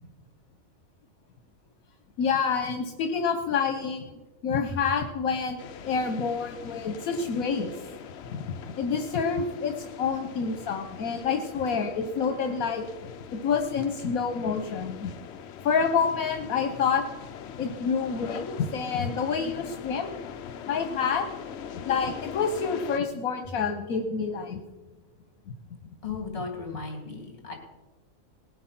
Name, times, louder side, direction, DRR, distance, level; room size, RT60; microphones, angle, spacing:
voice 1, 2.2-7.7 8.3-12.8 13.4-15.1 15.6-17.0 17.6-20.2 20.7-21.2 21.8-24.6, left 5 dB, 80° left, 5 dB, 1.3 m, -28 dB
sound 1, 5.6-23.0, left 8 dB, 60° left, 0.8 m, -42 dB
voice 2, 26.0-27.5, left 4 dB, 40° left, 2 dB, 3.2 m, -36 dB
19.0 x 7.9 x 5.9 m, 1.2 s
omnidirectional pair, 1.5 m